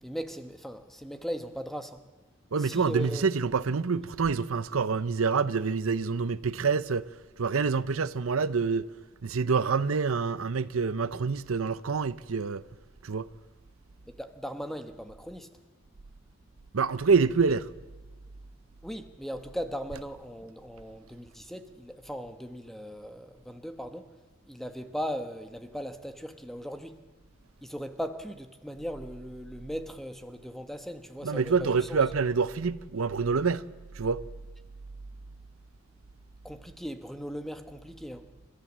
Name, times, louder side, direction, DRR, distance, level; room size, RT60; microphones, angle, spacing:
voice 1, 0.0-2.0 2.6-3.3 14.2-15.5 18.8-24.1 24.5-26.9 27.6-32.0 36.4-38.3, equal, ahead, 1.2 m, -38 dB
voice 2, 2.5-7.0 7.4-8.9 9.2-12.6 13.0-13.3 16.7-17.7 31.2-33.7 34.0-34.2, right 5 dB, 85° right, 0.7 m, -26 dB
30.0 x 14.0 x 7.4 m
head